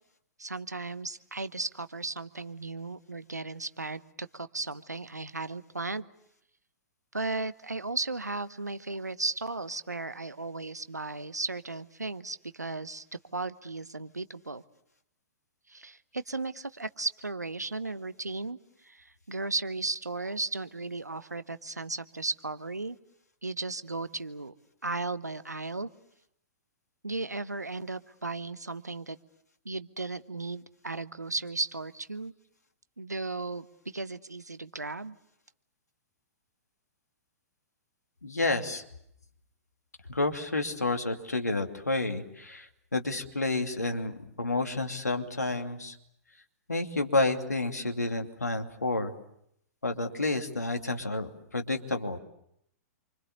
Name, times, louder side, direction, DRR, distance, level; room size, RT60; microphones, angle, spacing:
voice 1, 0.4-6.1 7.1-13.0 13.3-14.6 15.7-18.6 18.8-23.0 23.4-24.5 24.8-25.9 27.0-29.2 29.6-32.3 33.0-35.1, right 3 dB, 85° right, 14 dB, 1.0 m, -35 dB
voice 2, 38.2-38.8 40.1-46.0 46.7-49.1 49.8-52.2, left 2 dB, 80° left, 5 dB, 2.7 m, -30 dB
28.0 x 25.0 x 6.8 m, 0.75 s
figure-of-eight pair, 110°, 9 cm